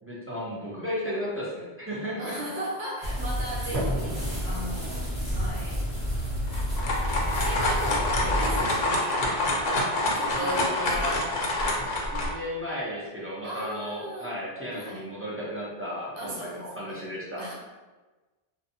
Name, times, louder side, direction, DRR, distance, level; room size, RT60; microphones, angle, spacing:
voice 1, 0.0-2.3 8.2-8.7 10.4-11.2 12.1-17.5, equal, 25° right, -7 dB, 0.3 m, -34 dB
voice 2, 2.2-5.8 7.4-11.3 13.4-14.3 14.7-15.0 16.1-17.0 17.4-17.5, right 1 dB, 75° right, -4 dB, 0.9 m, -38 dB
sound 1, 3.0-8.6, equal, 5° right, 0.9 m, -30 dB
sound 2, 3.7-11.8, equal, 55° right, 1.1 m, -40 dB
sound 3, 6.5-12.3, left 1 dB, 60° left, 0.6 m, -26 dB
2.6 x 2.2 x 2.6 m, 1.2 s
omnidirectional pair, 1.1 m